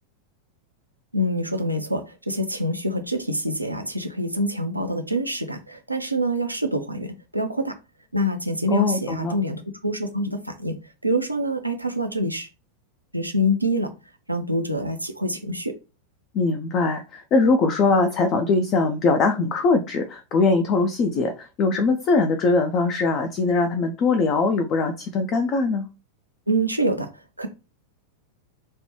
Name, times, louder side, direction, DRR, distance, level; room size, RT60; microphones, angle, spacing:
voice 1, 1.1-7.8 8.1-10.8 11.0-12.5 13.1-13.9 14.3-15.7 26.5-27.1 27.4-27.5, equal, 85° right, 0.4 m, -26 dB
voice 2, 8.7-9.3 16.3-25.9, left 3 dB, 35° left, 0.4 m, -21 dB
3.1 x 2.1 x 2.9 m
figure-of-eight pair, 90°, 0 cm